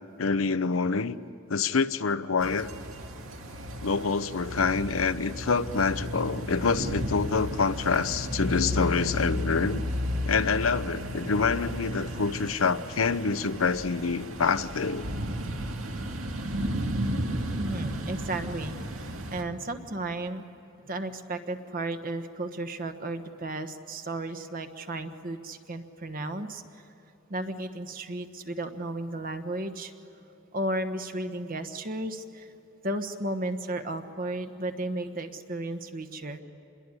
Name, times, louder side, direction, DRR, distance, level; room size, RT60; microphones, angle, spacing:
voice 1, 0.2-1.2 1.5-2.7 3.8-9.8 10.3-15.1, left 5 dB, 85° left, 0.8 m, -26 dB
sound 1, 2.4-19.4, equal, 85° right, 2.1 m, -33 dB
voice 2, 17.6-20.4 20.8-26.6 27.3-29.9 30.5-32.5 32.8-36.4, right 1 dB, 45° right, 1.3 m, -34 dB
27.5 x 21.5 x 9.9 m
head